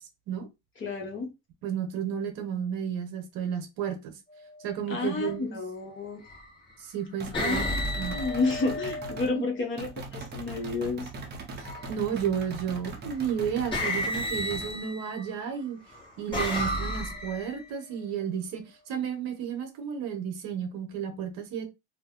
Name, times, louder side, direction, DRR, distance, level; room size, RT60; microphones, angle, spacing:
voice 1, 0.8-1.3 4.9-6.2 7.3-11.1, left 3 dB, 30° left, 1.0 m, -31 dB
voice 2, 1.6-4.1 4.6-5.6 6.8-7.7 8.0-8.2 9.3-9.4 11.9-15.8 16.2-21.7, right 8 dB, 60° right, 1.0 m, -32 dB
sound 1, 5.1-5.4 6.2-6.7 7.3-9.4 11.6-12.1 13.2-13.3 13.7-15.3 15.9-17.6, left 1 dB, 15° left, 1.2 m, -32 dB
sound 2, 7.2-9.3 9.8-14.7, right 3 dB, 25° right, 0.6 m, -40 dB
2.5 x 2.1 x 3.6 m
cardioid pair, 130°, 37 cm